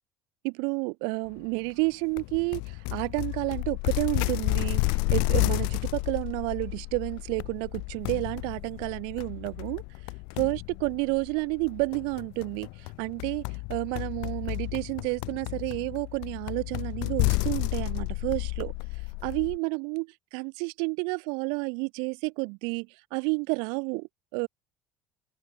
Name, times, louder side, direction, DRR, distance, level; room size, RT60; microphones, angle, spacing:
voice 1, 0.4-9.8 10.4-12.7 13.0-18.7 19.2-24.5, right 35 dB, 80° right, 4.0 m, -30 dB
sound 1, 2.2-19.6, left 32 dB, 80° left, 3.1 m, -31 dB
cardioid pair, 135°, 8 cm